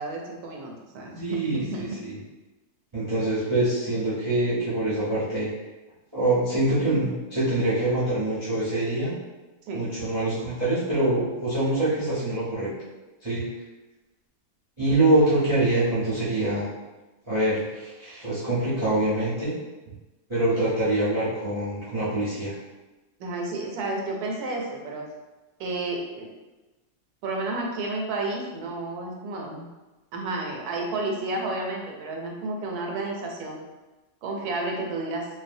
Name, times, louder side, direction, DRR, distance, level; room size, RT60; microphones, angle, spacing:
voice 1, 0.0-2.0 9.7-9.8 23.2-25.1 25.6-26.3 27.2-29.7 30.1-33.6 34.2-35.3, right 2 dB, 75° right, 0 dB, 1.1 m, -31 dB
voice 2, 1.2-2.2 2.9-5.5 6.1-9.1 9.7-12.7 13.2-13.5 14.8-16.7 17.3-19.6 20.3-22.5, right 1 dB, 40° right, -12 dB, 0.4 m, -24 dB
2.6 x 2.2 x 2.5 m, 1.1 s
omnidirectional pair, 1.7 m